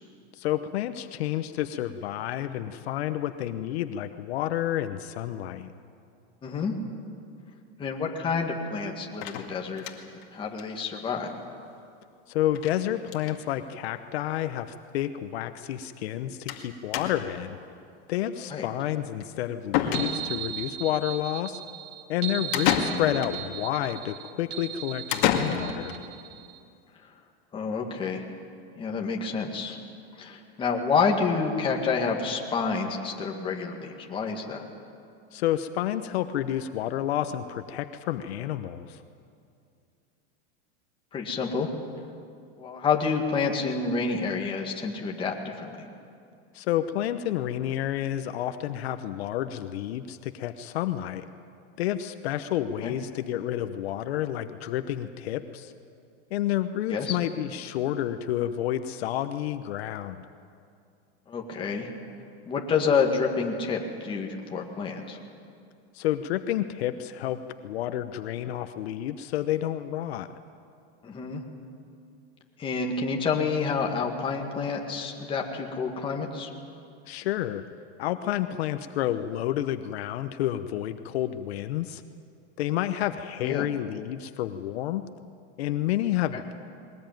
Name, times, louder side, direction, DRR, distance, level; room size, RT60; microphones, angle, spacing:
voice 1, 0.3-5.7 12.3-17.6 18.1-21.6 22.1-25.9 35.3-39.0 46.5-51.3 51.8-55.7 56.3-60.2 65.9-70.3 77.1-77.6 78.0-82.0 82.6-85.0 85.6-86.5, left 12 dB, 70° left, 9 dB, 1.0 m, -30 dB
voice 2, 6.4-6.8 7.8-11.3 18.5-18.7 27.5-28.2 28.8-29.8 30.2-34.6 41.1-41.7 42.6-45.9 52.8-52.9 56.9-57.2 61.3-61.9 62.5-65.2 71.0-71.4 72.6-76.5 83.4-83.7, left 5 dB, 15° left, 0 dB, 2.0 m, -28 dB
sound 1, 9.2-10.2 10.6-10.7 11.0-11.1 11.3-11.4 12.6-12.8 13.0-13.4 14.3-14.4 14.6-14.7 16.5-16.7 16.9-17.4 19.2-19.3 19.7-20.5 22.5-23.4 25.1-26.0, left 9 dB, 50° left, 2.2 m, -28 dB
sound 2, 19.9-26.6, right 11 dB, 75° right, 1.9 m, -37 dB
21.5 x 19.5 x 9.2 m, 2.4 s
supercardioid pair, 165°, 33 cm